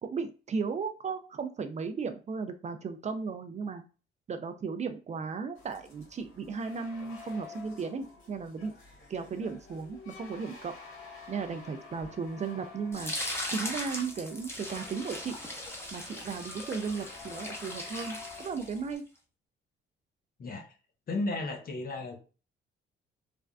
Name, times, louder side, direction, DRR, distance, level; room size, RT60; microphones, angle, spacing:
voice 1, 0.0-3.8 4.3-8.7 9.1-10.7 11.3-13.1 13.5-15.4 15.9-19.0, right 5 dB, 35° right, 8 dB, 0.4 m, -35 dB
sound 1, 5.5-19.0, left 5 dB, 85° left, 1.3 m, -50 dB
sound 2, 12.9-19.0, left 1 dB, 10° left, 0.8 m, -39 dB
voice 2, 21.1-22.2, left 2 dB, 50° left, 4 dB, 0.8 m, -33 dB
3.3 x 2.2 x 2.4 m, 0.34 s
cardioid pair, 90°, 20 cm